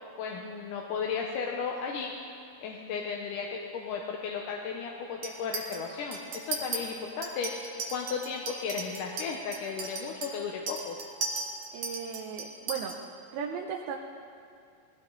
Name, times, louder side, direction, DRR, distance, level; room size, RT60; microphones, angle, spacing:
voice 1, 0.2-2.1 2.6-11.0, left 5 dB, 70° left, 0 dB, 2.2 m, -35 dB
Chink clink, 5.2-5.8 6.1-6.8 7.2-12.9, right 3 dB, 55° right, 2.2 m, -37 dB
voice 2, 11.7-13.0 13.3-14.0, right 7 dB, 80° right, 1 dB, 2.6 m, -36 dB
19.5 x 17.5 x 3.9 m, 2.4 s
omnidirectional pair, 4.4 m